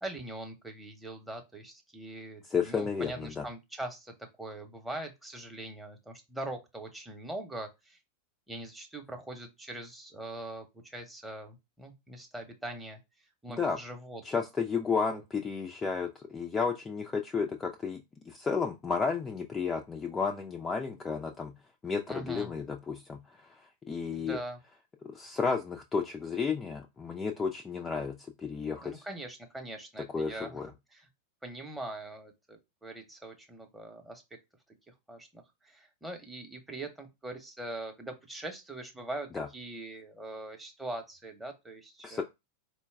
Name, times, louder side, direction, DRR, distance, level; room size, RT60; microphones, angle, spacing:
voice 1, 0.0-8.0 8.5-13.0 13.4-14.4 15.0-15.2 22.1-22.5 24.1-24.6 28.8-30.6 30.9-31.1 31.4-34.2 35.1-42.2, right 1 dB, 5° right, 3 dB, 0.9 m, -42 dB
voice 2, 2.5-3.5 13.5-13.8 14.2-18.0 18.3-21.5 21.8-24.4 25.0-29.0 30.1-30.7 39.3-39.5 42.0-42.2, left 5 dB, 15° left, 3 dB, 0.4 m, -32 dB
4.4 x 2.2 x 3.4 m, 0.22 s
figure-of-eight pair, 90°, 0 cm